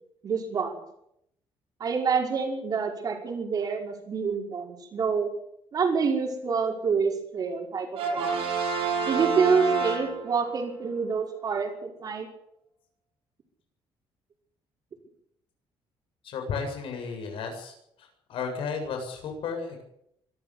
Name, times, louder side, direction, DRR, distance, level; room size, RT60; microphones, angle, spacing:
voice 1, 0.2-0.8 1.8-5.3 5.7-8.3 9.0-12.3, right 5 dB, 40° right, 2 dB, 5.4 m, -27 dB
Brass instrument, 7.9-10.6, right 5 dB, 75° right, 7.6 m, -28 dB
voice 2, 16.2-17.7 18.3-19.8, left 5 dB, 65° left, 4 dB, 7.6 m, -33 dB
24.0 x 13.5 x 8.4 m, 0.76 s
cardioid pair, 145°, 10 cm